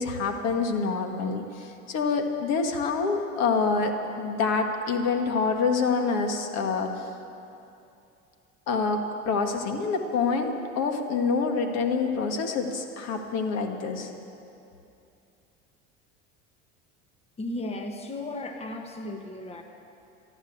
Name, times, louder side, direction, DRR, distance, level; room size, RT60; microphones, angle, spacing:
voice 1, 0.0-7.0 8.7-14.1, left 4 dB, 60° left, 5 dB, 1.6 m, -26 dB
voice 2, 17.4-19.6, left 1 dB, 20° left, 5 dB, 1.2 m, -35 dB
13.5 x 11.5 x 7.9 m, 2.7 s
supercardioid pair, 105°, 30 cm